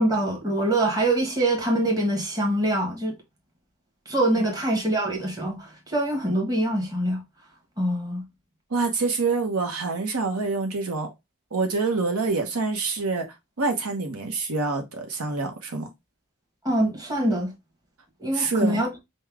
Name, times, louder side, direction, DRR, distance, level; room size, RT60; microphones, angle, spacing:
voice 1, 0.0-3.1 4.0-7.2 7.8-8.2 16.6-17.5 18.2-18.9, right 1 dB, 15° right, 1.4 m, -24 dB
voice 2, 8.7-11.1 11.5-13.3 13.6-15.9 18.3-18.8, right 3 dB, 75° right, 0.9 m, -26 dB
5.4 x 2.2 x 3.4 m
head